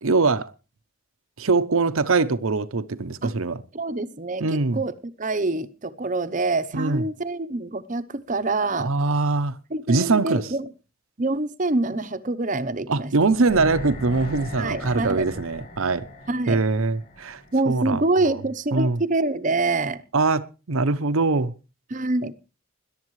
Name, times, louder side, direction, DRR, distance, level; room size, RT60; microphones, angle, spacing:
voice 1, 0.0-0.5 1.4-3.6 4.4-4.8 6.7-7.0 8.8-9.6 9.9-10.5 12.9-16.1 16.5-18.4 18.7-19.0 20.1-21.5, right 3 dB, 75° right, 0.8 m, -22 dB
voice 2, 3.7-8.9 9.7-10.7 11.2-13.1 14.6-15.3 16.3-16.6 17.5-20.0 21.9-22.3, right 2 dB, 35° right, 0.8 m, -26 dB
sound 1, 13.2-18.3 18.6-18.7, left 1 dB, 45° left, 7.4 m, -38 dB
21.0 x 11.5 x 3.1 m
head